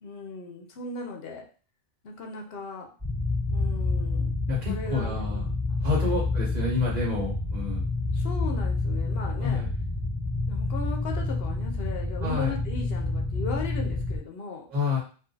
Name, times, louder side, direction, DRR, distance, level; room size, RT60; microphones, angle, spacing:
voice 1, 0.0-1.4 2.0-2.9 3.5-4.3 4.6-5.6 5.9-6.1 8.1-9.6 10.5-14.7, left 3 dB, 75° left, 2 dB, 0.9 m, -37 dB
sound 1, 3.0-14.2, left 2 dB, 15° right, 1.5 m, -28 dB
voice 2, 4.5-5.4 5.8-7.8 9.4-9.7 12.2-12.6 14.7-15.0, left 4 dB, 45° right, -5 dB, 1.0 m, -28 dB
2.6 x 2.5 x 3.8 m, 0.38 s
omnidirectional pair, 1.1 m